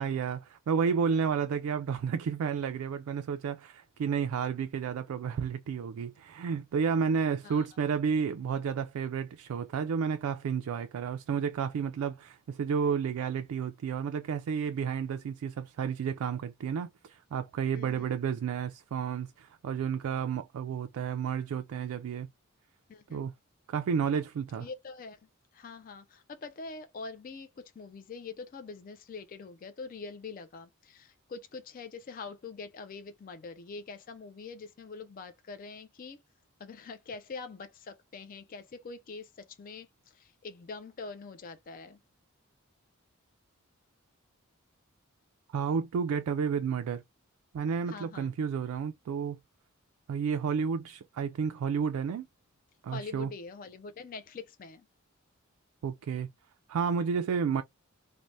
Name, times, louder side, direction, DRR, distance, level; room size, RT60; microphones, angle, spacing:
voice 1, 0.0-22.3 23.1-23.3 23.7-24.7 45.5-47.0 47.5-49.4 50.1-52.3 52.8-53.3 55.8-56.3 56.7-57.6, right 6 dB, 80° right, 0.3 m, -31 dB
voice 2, 17.7-18.1 22.9-23.3 24.6-36.2 36.6-42.0 47.9-48.3 52.9-54.9, left 4 dB, 40° left, 0.3 m, -44 dB
3.2 x 2.0 x 2.6 m
head